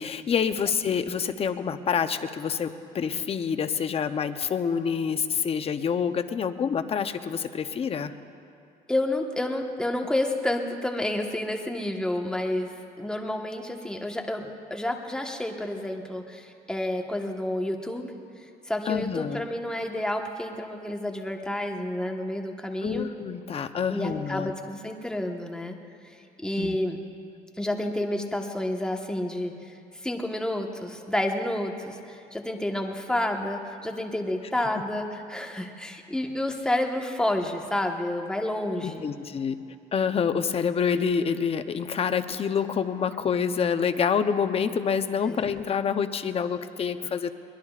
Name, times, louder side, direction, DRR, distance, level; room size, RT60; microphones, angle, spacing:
voice 1, 0.0-8.1 18.9-19.4 22.8-24.5 26.6-26.8 38.8-39.6 39.9-47.3, left 6 dB, 35° left, 9 dB, 0.7 m, -27 dB
voice 2, 8.9-18.1 18.6-23.1 23.9-25.7 26.4-27.0 27.6-39.1 45.3-45.4, left 1 dB, 5° left, 2 dB, 1.3 m, -30 dB
23.0 x 21.0 x 2.5 m, 2.5 s
cardioid pair, 110°, 17 cm